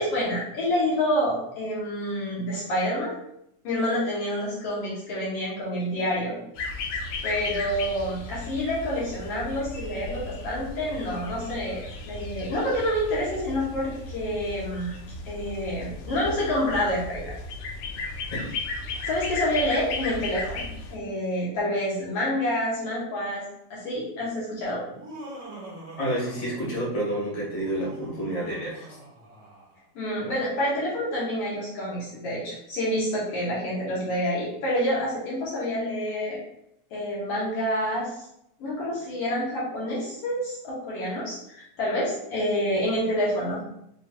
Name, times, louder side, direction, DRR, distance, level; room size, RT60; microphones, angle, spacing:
voice 1, 0.0-3.2 3.6-6.4 7.2-15.0 15.3-17.3 19.0-23.4 23.7-24.8 30.0-36.4 36.9-38.2 38.6-43.6, equal, 60° left, -6 dB, 1.9 m, -28 dB
sound 1, 6.5-21.0, left 3 dB, 80° left, 2.2 m, -35 dB
Laughter, 24.8-27.0 27.5-29.8, right 1 dB, 85° right, 0.7 m, -43 dB
voice 2, 26.0-29.0, right 1 dB, 25° left, -7 dB, 0.7 m, -29 dB
5.6 x 3.1 x 2.5 m, 0.75 s
omnidirectional pair, 3.5 m